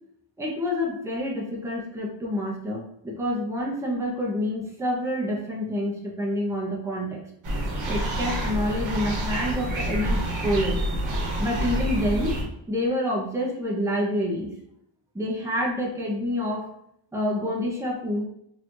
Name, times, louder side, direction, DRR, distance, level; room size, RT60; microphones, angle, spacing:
voice 1, 0.4-7.2 7.9-10.8 11.4-12.4 12.7-14.5 15.1-16.7 17.1-18.2, left 1 dB, 5° right, -2 dB, 1.0 m, -27 dB
sound 1, 7.4-12.4, right 1 dB, 65° right, 1.2 m, -27 dB
4.1 x 3.1 x 2.6 m, 0.73 s
cardioid pair, 75°, 48 cm